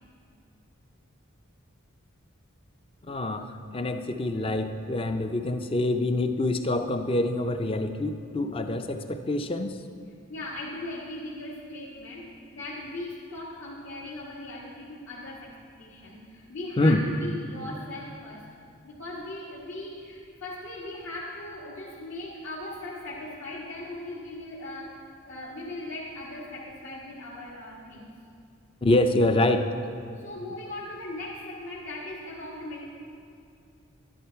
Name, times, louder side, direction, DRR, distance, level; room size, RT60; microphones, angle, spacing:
voice 1, 3.1-9.8 16.8-17.1 28.8-29.7, left 2 dB, 25° left, 7 dB, 0.4 m, -26 dB
voice 2, 10.3-12.3 12.5-18.4 18.8-28.1 30.2-32.8, left 2 dB, 70° left, -7 dB, 1.6 m, -39 dB
11.5 x 11.0 x 4.6 m, 2.4 s
head